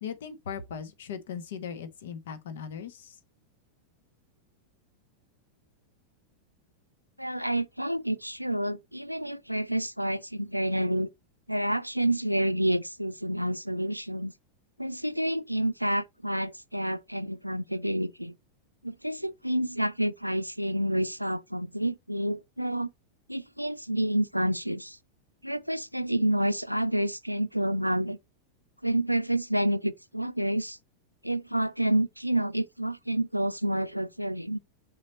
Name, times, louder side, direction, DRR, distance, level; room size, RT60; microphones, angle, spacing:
voice 1, 0.0-3.2, left 7 dB, 60° left, 1.1 m, -38 dB
voice 2, 7.2-11.1 11.5-14.3 14.8-18.4 18.8-22.9 23.3-25.0 25.4-28.2 28.8-30.8 31.2-34.6, right 1 dB, 90° right, 0.4 m, -29 dB
6.6 x 4.3 x 4.1 m
figure-of-eight pair, 90°, 0 cm